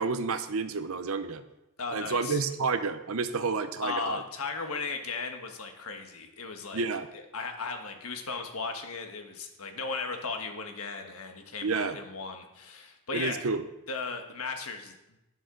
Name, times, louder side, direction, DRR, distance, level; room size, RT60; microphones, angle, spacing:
voice 1, 0.0-1.4 1.9-4.2 6.7-7.1 11.6-12.0 13.1-13.6, right 4 dB, 70° right, 11 dB, 0.8 m, -30 dB
voice 2, 1.8-2.4 3.8-6.8 7.1-13.4 13.9-14.9, left 4 dB, 80° left, 5 dB, 1.4 m, -36 dB
11.5 x 10.0 x 3.9 m, 0.92 s
head